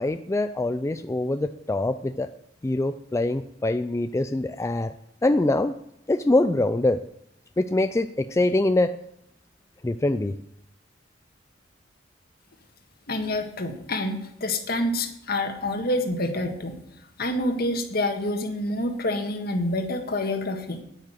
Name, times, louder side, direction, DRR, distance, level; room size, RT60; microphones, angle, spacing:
voice 1, 0.0-2.3 2.6-4.9 5.2-5.7 6.1-7.0 7.6-8.9 9.8-10.3, left 2 dB, 15° left, 9 dB, 0.4 m, -24 dB
voice 2, 13.1-16.8 17.2-20.8, left 1 dB, 55° left, 6 dB, 1.7 m, -27 dB
10.0 x 10.0 x 6.4 m, 0.79 s
head